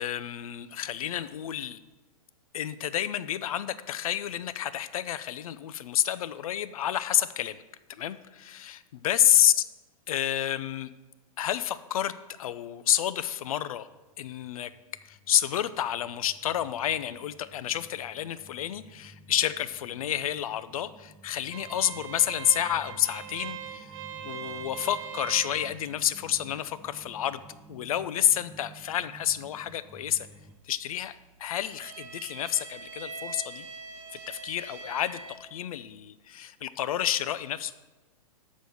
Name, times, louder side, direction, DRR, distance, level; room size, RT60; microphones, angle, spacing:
voice 1, 0.0-1.8 2.5-7.6 8.0-9.6 10.1-10.9 11.4-12.1 12.4-13.9 14.2-14.7 15.0-23.9 24.2-27.4 27.7-30.3 30.7-33.7 34.3-37.7, left 11 dB, 65° left, 15 dB, 0.6 m, -29 dB
sound 1, 13.9-30.6, right 2 dB, 5° right, 0.3 m, -53 dB
sound 2, 21.5-35.4, right 7 dB, 55° right, 1.1 m, -43 dB
6.4 x 6.2 x 6.9 m, 1.1 s
hypercardioid pair, 125°, 19 cm